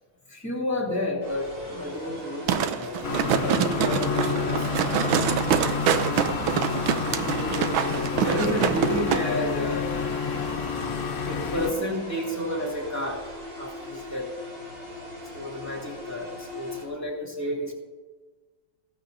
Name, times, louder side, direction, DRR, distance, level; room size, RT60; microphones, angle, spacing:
voice 1, 0.3-4.8 5.8-6.2 6.8-9.9 11.2-13.3 13.6-14.3 15.3-17.7, left 1 dB, 10° left, -2 dB, 2.6 m, -31 dB
Annoying Buzzer, 1.2-16.9, left 1 dB, 60° right, 3.9 m, -41 dB
sound 1, 2.5-9.2 9.6-9.7, right 8 dB, 90° right, 1.5 m, -25 dB
sound 2, 3.0-11.7, left 5 dB, 50° left, 1.0 m, -29 dB
16.0 x 14.0 x 2.7 m, 1.3 s
omnidirectional pair, 2.2 m